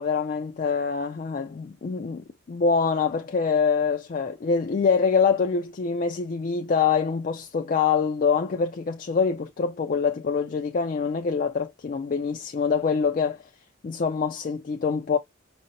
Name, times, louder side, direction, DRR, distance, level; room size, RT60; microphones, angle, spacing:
voice 1, 0.0-13.4 13.8-15.2, left 5 dB, 40° left, 0.3 m, -25 dB
5.1 x 2.1 x 2.6 m
head